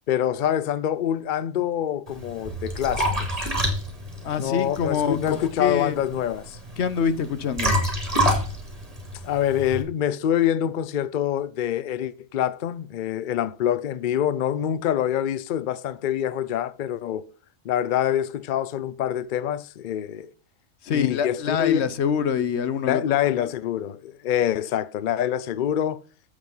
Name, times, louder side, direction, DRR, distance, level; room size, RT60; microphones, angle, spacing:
voice 1, 0.1-3.5 4.4-6.6 9.2-17.2 17.6-20.3 20.9-21.8 22.8-26.0, left 10 dB, 80° left, 0.4 m, -25 dB
Liquid, 2.1-9.8, equal, 25° right, 2.9 m, -28 dB
voice 2, 4.2-6.0 6.8-7.8 20.8-23.2, left 7 dB, 55° left, 1.0 m, -25 dB
8.2 x 7.3 x 5.5 m
omnidirectional pair, 1.5 m